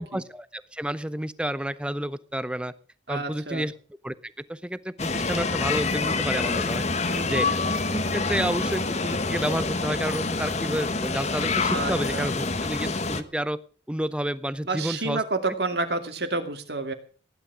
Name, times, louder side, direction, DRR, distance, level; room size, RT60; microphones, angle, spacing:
voice 1, 0.0-2.7 3.1-3.7 4.0-7.6 7.9-13.6 13.9-15.2, right 1 dB, 5° right, 15 dB, 0.7 m, -30 dB
voice 2, 3.1-3.7 7.1-7.4 11.7-12.3 14.6-16.9, right 3 dB, 60° right, 7 dB, 2.5 m, -30 dB
sound 1, 5.0-13.2, left 3 dB, 35° left, 1.2 m, -27 dB
16.0 x 11.0 x 6.3 m, 0.40 s
head